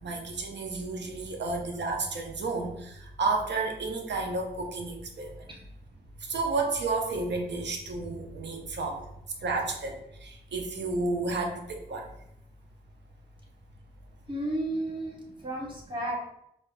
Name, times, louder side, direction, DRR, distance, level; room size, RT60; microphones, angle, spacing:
voice 1, 0.0-5.4 6.3-9.0 9.4-12.1, right 3 dB, 90° right, 2 dB, 0.6 m, -31 dB
voice 2, 14.3-16.2, right 1 dB, 25° right, -2 dB, 1.1 m, -33 dB
4.7 x 2.4 x 2.4 m, 0.78 s
cardioid pair, 55°, 18 cm